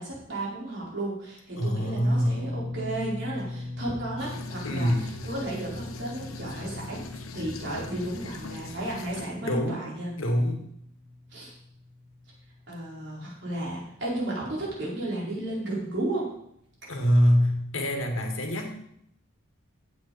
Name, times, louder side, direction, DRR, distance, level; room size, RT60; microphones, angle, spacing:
voice 1, 0.0-10.1 11.3-11.5 12.7-16.3, right 1 dB, 55° right, -5 dB, 4.8 m, -33 dB
voice 2, 1.6-2.5 4.6-5.1 9.4-9.8 10.2-10.6 16.9-18.7, equal, 70° left, 3 dB, 2.1 m, -24 dB
sound 1, 2.3-14.6 14.8-15.1 16.7-16.8, left 2 dB, 85° right, 3.5 m, -42 dB
sound 2, 4.2-9.3, left 3 dB, 85° left, 1.2 m, -42 dB
15.5 x 8.0 x 4.3 m, 0.73 s
head